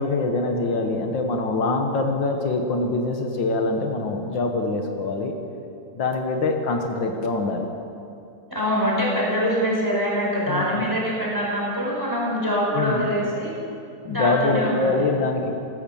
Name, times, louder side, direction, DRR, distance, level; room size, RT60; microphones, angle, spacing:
voice 1, 0.0-5.3 6.0-7.7 10.5-10.9 12.7-13.1 14.0-15.5, left 3 dB, 75° left, 3 dB, 1.9 m, -24 dB
voice 2, 8.5-13.6 14.1-15.0, equal, 10° right, -5 dB, 4.5 m, -24 dB
15.5 x 13.5 x 7.0 m, 2.6 s
omnidirectional pair, 2.1 m